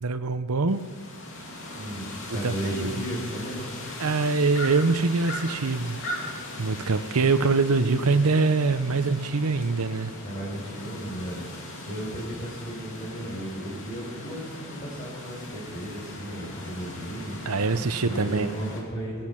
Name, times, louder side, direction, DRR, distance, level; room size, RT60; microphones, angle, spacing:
voice 1, 0.0-0.8 2.4-3.0 4.0-6.0 6.6-10.1 17.5-18.5, right 4 dB, 80° right, 11 dB, 0.8 m, -24 dB
sound 1, 0.7-18.8, left 1 dB, 60° left, 3.0 m, -39 dB
voice 2, 1.8-3.7 10.2-11.4 11.9-17.4 18.0-19.3, right 1 dB, 35° left, -7 dB, 4.7 m, -34 dB
22.5 x 10.5 x 6.0 m, 1.5 s
head